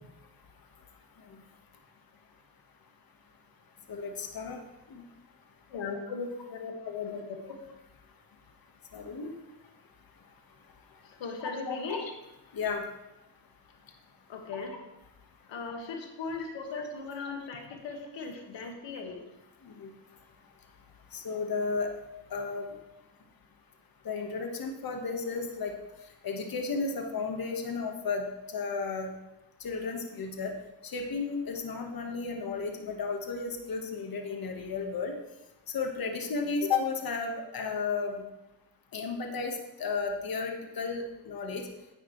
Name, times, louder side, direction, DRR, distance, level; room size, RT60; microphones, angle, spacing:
voice 1, 3.9-4.6 4.9-5.0 8.9-9.3 11.4-12.1 12.5-12.8 19.6-19.9 21.1-21.9 22.3-22.7 24.0-25.7 26.2-29.1 29.6-30.5 30.8-35.1 35.7-38.2 38.9-41.7, left 4 dB, 50° left, 3 dB, 1.6 m, -33 dB
voice 2, 5.7-7.6 11.2-12.0 14.3-14.7 15.5-19.2, left 4 dB, 75° left, 3 dB, 1.9 m, -38 dB
10.5 x 9.1 x 3.2 m, 0.97 s
cardioid pair, 70°, 44 cm